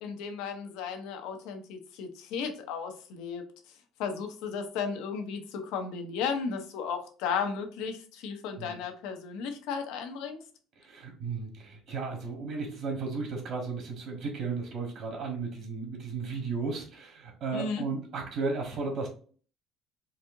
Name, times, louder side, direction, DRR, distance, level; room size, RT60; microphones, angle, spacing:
voice 1, 0.0-3.4 4.0-10.4 17.5-17.8, left 6 dB, 80° left, 5 dB, 0.8 m, -34 dB
voice 2, 10.8-19.1, right 4 dB, 55° right, 1 dB, 1.2 m, -34 dB
4.2 x 2.6 x 2.6 m, 0.41 s
cardioid pair, 150°, 0 cm